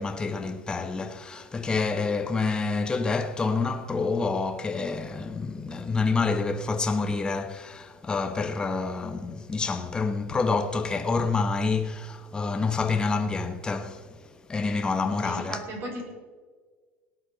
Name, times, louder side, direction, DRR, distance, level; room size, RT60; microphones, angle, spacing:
voice 1, 0.0-14.2 14.5-15.6, left 4 dB, 15° left, 0.9 m, -28 dB
voice 2, 15.2-16.0, right 1 dB, 45° right, 5.4 m, -36 dB
18.0 x 9.9 x 5.1 m
supercardioid pair, 140°, 6 cm